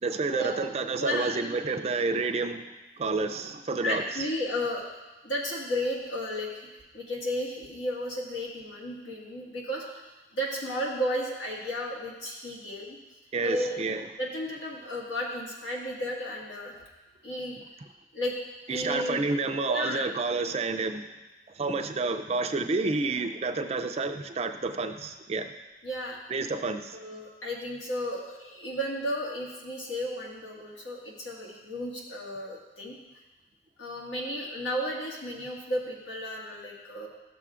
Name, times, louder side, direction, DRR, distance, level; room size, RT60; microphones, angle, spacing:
voice 1, 0.0-2.6 3.0-4.0 13.3-14.0 18.7-21.1 21.6-25.5 26.3-27.0, right 3 dB, 35° right, 6 dB, 0.4 m, -29 dB
voice 2, 1.0-1.4 3.8-4.9 5.2-6.7 6.9-10.1 10.3-13.0 13.4-13.8 14.2-16.8 17.2-17.6 18.1-18.3 18.7-19.2 19.7-20.1 25.8-26.2 26.9-33.0 33.8-37.1, equal, 90° left, -3 dB, 1.8 m, -33 dB
12.5 x 6.8 x 2.4 m, 1.1 s
head